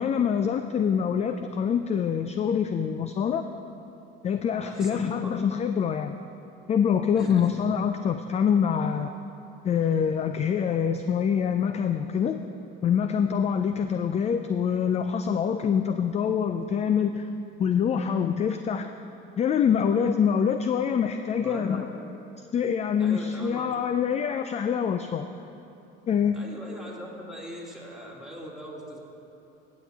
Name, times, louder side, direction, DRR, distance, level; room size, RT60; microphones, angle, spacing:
voice 1, 0.0-3.5 4.2-6.2 6.7-9.1 9.6-12.4 12.8-17.3 17.6-18.9 19.4-21.8 22.5-25.3 26.1-26.4, left 7 dB, 25° left, 8 dB, 0.3 m, -25 dB
voice 2, 4.6-5.3 7.1-7.5 21.4-21.9 23.0-23.7 26.3-29.0, equal, ahead, -4 dB, 2.2 m, -40 dB
15.5 x 7.4 x 3.5 m, 2.9 s
hypercardioid pair, 80°, 29 cm